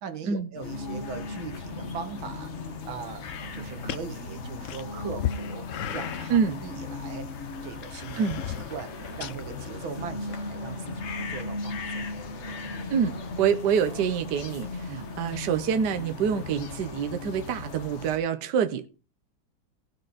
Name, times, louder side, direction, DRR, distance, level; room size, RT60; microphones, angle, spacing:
voice 1, 0.0-3.2 3.5-7.3 7.6-8.9 9.2-12.1 14.9-15.2, right 6 dB, 85° right, 2.2 m, -40 dB
sound 1, 0.5-18.2, left 2 dB, 40° left, 1.9 m, -38 dB
sound 2, 0.6-18.2, left 5 dB, 85° left, 2.3 m, -42 dB
sound 3, 2.8-9.7, left 10 dB, 70° left, 0.7 m, -38 dB
voice 2, 12.9-14.7 15.2-18.9, right 7 dB, 60° right, 1.5 m, -26 dB
18.5 x 6.5 x 4.1 m
omnidirectional pair, 2.2 m